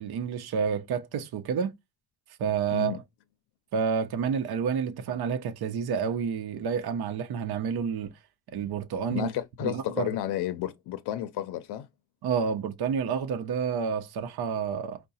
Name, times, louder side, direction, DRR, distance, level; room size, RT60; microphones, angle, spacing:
voice 1, 0.0-1.7 2.4-3.0 3.7-8.1 8.5-9.3 9.6-10.1 12.2-15.0, right 6 dB, 75° right, 0.8 m, -29 dB
voice 2, 9.1-11.9, left 12 dB, 90° left, 0.5 m, -32 dB
4.7 x 2.2 x 4.0 m
cardioid pair, 175°, 38 cm